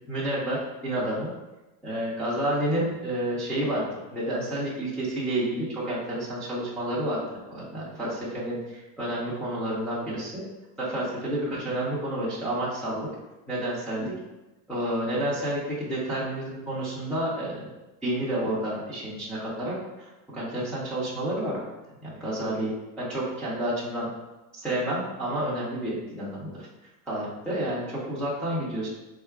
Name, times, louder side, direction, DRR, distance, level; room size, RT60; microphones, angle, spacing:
voice 1, 0.1-1.3 1.8-7.2 7.5-10.4 10.8-13.1 13.5-14.1 14.7-17.6 18.0-21.6 22.0-22.7 23.0-24.1 24.5-26.7 27.1-28.9, right 1 dB, ahead, -10 dB, 0.4 m, -30 dB
3.6 x 2.4 x 4.4 m, 1.0 s
supercardioid pair, 165°, 43 cm